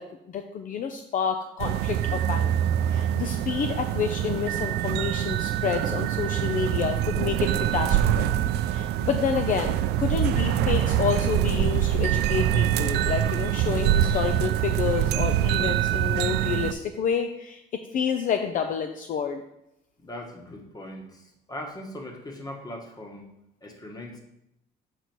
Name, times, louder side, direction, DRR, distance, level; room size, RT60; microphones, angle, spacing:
voice 1, 0.0-2.5 2.9-8.3 8.7-19.4, left 7 dB, 50° left, 6 dB, 0.6 m, -29 dB
sound 1, 1.6-16.7, right 11 dB, 80° right, 0.4 m, -25 dB
voice 2, 20.0-23.3 23.6-24.2, left 1 dB, 20° left, 3 dB, 1.4 m, -40 dB
7.0 x 4.3 x 4.6 m, 0.81 s
cardioid pair, 110°, 17 cm